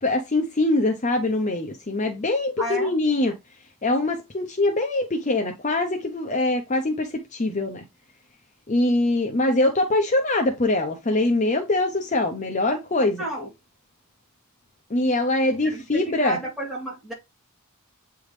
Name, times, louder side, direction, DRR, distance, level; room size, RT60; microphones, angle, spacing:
voice 1, 0.0-3.3 3.8-7.8 8.7-13.2 14.9-16.4, left 2 dB, 35° left, 0.7 m, -23 dB
voice 2, 2.6-3.0 13.2-13.5 15.7-17.1, right 1 dB, ahead, 2.8 m, -31 dB
8.4 x 3.5 x 3.2 m
head